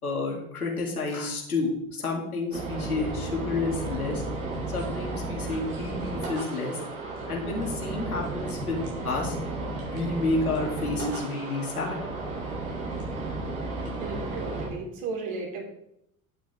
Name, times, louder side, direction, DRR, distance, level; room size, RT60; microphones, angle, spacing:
voice 1, 0.0-4.2 4.7-6.8 7.3-9.4 9.8-12.0, left 3 dB, 80° left, -1 dB, 2.6 m, -30 dB
sound 1, 2.5-14.7, right 2 dB, 75° right, 3.8 m, -33 dB
voice 2, 14.0-15.6, right 4 dB, 55° right, -1 dB, 3.6 m, -34 dB
11.0 x 9.3 x 3.7 m, 0.77 s
figure-of-eight pair, 65°, 43 cm